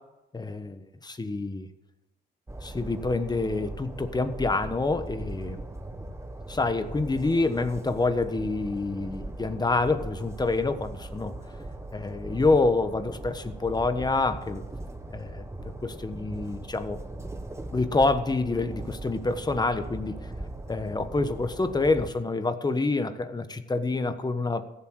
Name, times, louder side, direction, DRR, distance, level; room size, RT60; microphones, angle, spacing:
voice 1, 0.3-1.7 2.6-5.6 6.5-11.3 11.9-14.6 15.1-17.0 17.7-20.2 20.7-24.6, left 3 dB, 20° left, 10 dB, 1.2 m, -27 dB
Train, 2.5-22.1, right 2 dB, 15° right, 1.3 m, -40 dB
15.5 x 7.4 x 8.0 m, 0.99 s
cardioid pair, 90°, 20 cm